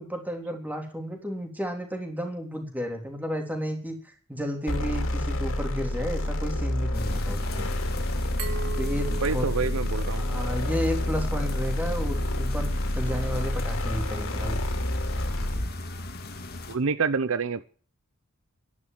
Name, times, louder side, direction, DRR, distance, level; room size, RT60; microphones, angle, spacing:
voice 1, 0.0-4.0 4.3-7.7 8.8-9.5 10.2-12.7 13.0-14.6, equal, 10° right, 3.3 m, -32 dB
sound 1, 4.7-15.7, left 1 dB, 60° left, 2.9 m, -28 dB
sound 2, 6.9-16.8, left 2 dB, 45° left, 2.1 m, -38 dB
Glass, 8.4-11.2, right 5 dB, 80° right, 3.5 m, -39 dB
voice 2, 9.2-10.4 16.7-17.6, right 5 dB, 65° right, 0.7 m, -27 dB
11.0 x 11.0 x 7.4 m
head